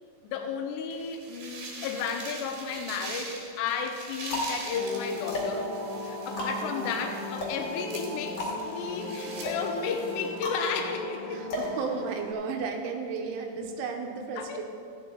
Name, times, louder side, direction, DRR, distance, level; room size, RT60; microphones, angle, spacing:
voice 1, 0.2-5.7 6.0-11.5 14.4-14.6, left 6 dB, 80° left, 4 dB, 2.7 m, -33 dB
sound 1, 0.9-10.4, right 3 dB, 60° right, 2.8 m, -43 dB
sound 2, 2.3-3.1 3.7-12.5, left 1 dB, 50° left, 1.8 m, -36 dB
sound 3, 4.7-12.3, left 2 dB, 25° left, 2.1 m, -38 dB
voice 2, 6.6-7.0 11.3-14.6, right 5 dB, 85° right, 3 dB, 3.3 m, -34 dB
14.5 x 9.3 x 3.9 m, 2.3 s
omnidirectional pair, 5.6 m